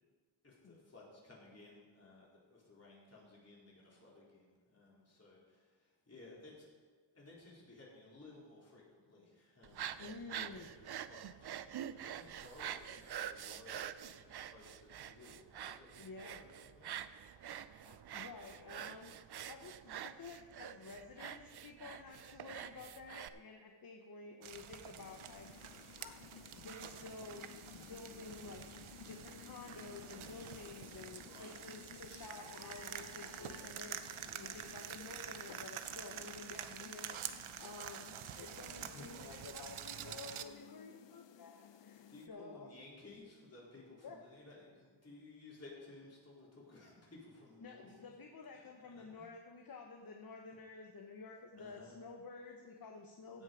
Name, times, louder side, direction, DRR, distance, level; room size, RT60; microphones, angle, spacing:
voice 1, 0.4-6.7 7.1-10.1 10.7-17.9 31.2-31.6 38.7-39.4 42.1-47.9 48.9-49.3 51.5-52.0 53.3-53.4, left 2 dB, 30° left, -5 dB, 3.8 m, -58 dB
sound 1, 9.6-23.3, right 10 dB, 55° right, 0.5 m, -46 dB
voice 2, 10.0-10.7 16.0-16.4 17.8-19.1 19.5-25.5 26.5-28.6 29.0-42.7 44.0-44.2 47.6-53.4, left 4 dB, 45° left, 2 dB, 1.1 m, -51 dB
sound 2, 24.4-40.5, right 9 dB, 85° right, 0.8 m, -48 dB
sound 3, 25.0-42.3, left 9 dB, 65° left, 0.6 m, -57 dB
16.0 x 6.7 x 5.1 m, 1.5 s
wide cardioid pair, 125°, 47 cm